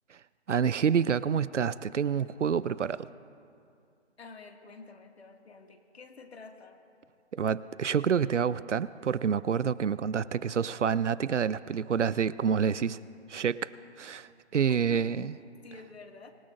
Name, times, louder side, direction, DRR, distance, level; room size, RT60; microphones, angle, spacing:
voice 1, 0.5-3.1 7.3-13.0 13.3-13.7 14.0-15.3, right 7 dB, 90° right, 18 dB, 0.6 m, -28 dB
voice 2, 4.2-6.8 14.7-15.1 15.6-16.3, left 4 dB, 60° left, 3 dB, 2.1 m, -48 dB
25.0 x 21.0 x 2.6 m, 2.4 s
figure-of-eight pair, 155°, 35 cm